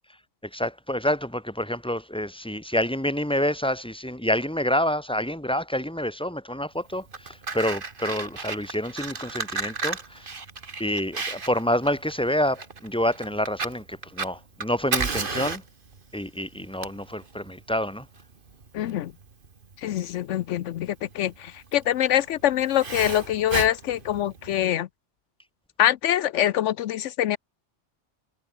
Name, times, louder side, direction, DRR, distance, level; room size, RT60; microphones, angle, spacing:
voice 1, 0.5-10.3 10.8-15.6 16.1-18.1, equal, 5° left, 3.2 m, -27 dB
Fire, 6.9-24.7, right 4 dB, 45° right, 1.9 m, -34 dB
voice 2, 18.7-19.1 19.8-24.9 25.8-27.4, left 12 dB, 80° left, 1.0 m, -24 dB
omnidirectional pair, 1.2 m